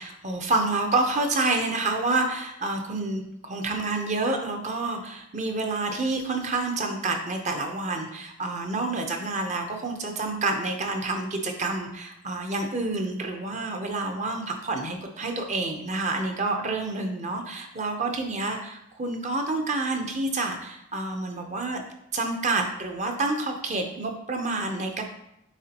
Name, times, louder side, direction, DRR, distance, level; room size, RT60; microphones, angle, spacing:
voice 1, 0.0-21.8 22.1-25.0, right 2 dB, 35° right, 4 dB, 0.8 m, -28 dB
9.1 x 3.8 x 2.9 m, 0.82 s
head